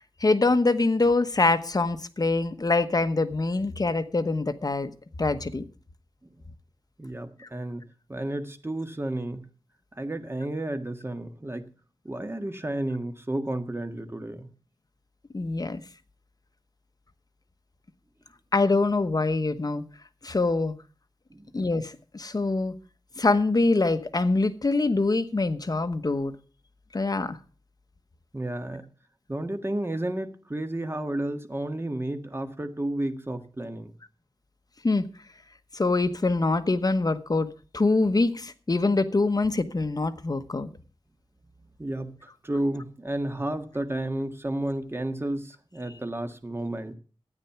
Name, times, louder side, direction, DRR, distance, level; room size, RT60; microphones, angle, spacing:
voice 1, 0.2-4.9 5.2-5.6 7.4-7.5 15.3-15.8 18.5-19.8 20.2-20.7 21.5-22.7 23.2-26.4 26.9-27.4 34.8-35.0 35.7-37.5 37.7-40.7, left 3 dB, 40° left, 1.1 m, -24 dB
voice 2, 7.0-9.5 9.9-11.7 12.0-14.5 21.3-21.5 28.3-28.9 29.3-33.9 41.8-42.2 42.4-46.9, right 1 dB, 25° right, 1.6 m, -32 dB
13.5 x 9.2 x 5.9 m
wide cardioid pair, 75°, 10 cm